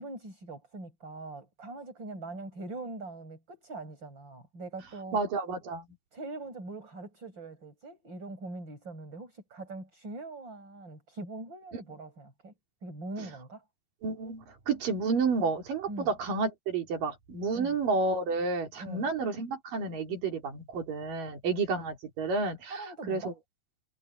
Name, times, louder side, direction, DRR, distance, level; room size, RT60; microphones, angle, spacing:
voice 1, 0.0-5.2 6.1-12.5 12.8-13.6 15.9-16.1 17.5-17.8 18.8-19.1 22.7-23.3, right 2 dB, 30° right, 8.3 m, -42 dB
voice 2, 5.1-5.9 14.0-23.3, right 4 dB, 60° right, 5.0 m, -30 dB
omnidirectional pair, 4.4 m